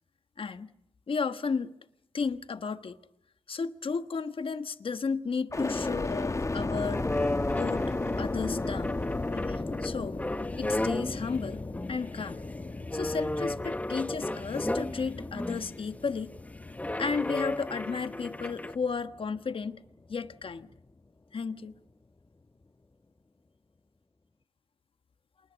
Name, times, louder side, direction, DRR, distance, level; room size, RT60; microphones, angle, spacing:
voice 1, 0.4-0.7 1.1-1.7 2.1-3.0 3.5-7.0 7.6-7.9 8.2-9.0 9.3-10.2 10.6-11.6 11.9-12.4 12.9-16.3 17.0-19.8 20.1-20.7 21.3-21.7, left 5 dB, 60° left, 1.3 m, -33 dB
sound 1, 5.5-19.5 20.0-20.7, left 2 dB, 30° left, 1.3 m, -35 dB
sound 2, 6.9-11.3 11.7-12.2 12.9-15.7 16.7-18.7, left 1 dB, 15° left, 1.2 m, -34 dB
27.5 x 20.5 x 6.4 m
cardioid pair, 55°, 10 cm